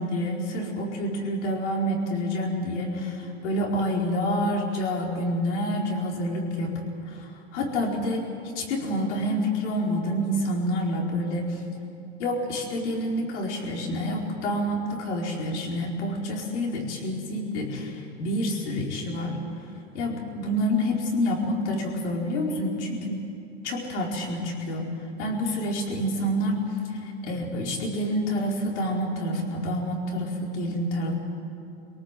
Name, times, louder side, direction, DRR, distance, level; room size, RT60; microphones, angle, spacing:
voice 1, 0.0-6.8 7.1-8.2 8.5-11.6 12.2-19.4 19.9-23.2 23.6-24.9 25.2-26.6 27.2-31.1, equal, 75° left, -1 dB, 4.7 m, -28 dB
24.0 x 18.0 x 7.7 m, 2.8 s
supercardioid pair, 140°, 35 cm